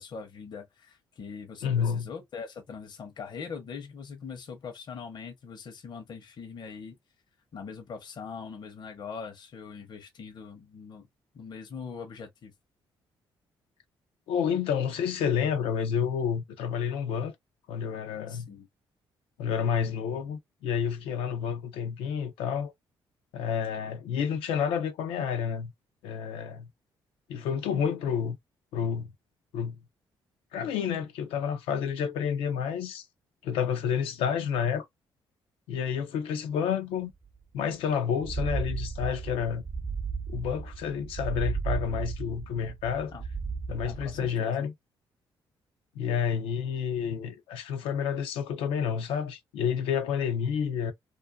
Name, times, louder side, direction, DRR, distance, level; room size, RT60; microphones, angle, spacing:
voice 1, 0.0-7.0 7.5-11.1 11.3-12.5 18.3-18.7 43.1-43.2 43.8-44.7, left 5 dB, 55° left, 0.8 m, -42 dB
voice 2, 1.6-2.1 14.3-17.3 17.7-18.5 19.4-22.7 23.3-25.7 26.0-26.7 27.3-28.4 28.7-29.1 29.5-29.8 30.5-33.1 33.4-34.9 35.7-37.1 37.5-39.6 40.3-43.1 43.7-44.7 45.9-50.9, left 7 dB, 90° left, 0.6 m, -29 dB
sound 1, 37.3-37.4 37.6-37.7 38.1-44.3, right 5 dB, 25° right, 0.4 m, -34 dB
2.5 x 2.3 x 2.3 m
cardioid pair, 85°, 9 cm